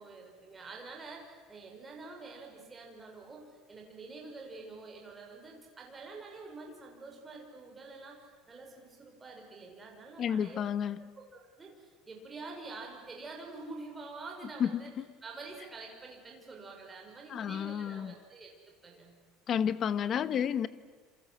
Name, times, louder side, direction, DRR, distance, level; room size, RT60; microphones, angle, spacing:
voice 1, 0.0-10.6 11.2-14.9 15.2-19.1, right 3 dB, 15° right, 0 dB, 5.4 m, -47 dB
voice 2, 10.2-11.1 14.6-15.1 17.3-18.1 19.5-20.7, left 8 dB, 30° left, 15 dB, 0.9 m, -31 dB
28.0 x 27.5 x 7.7 m, 1.5 s
cardioid pair, 175°, 0 cm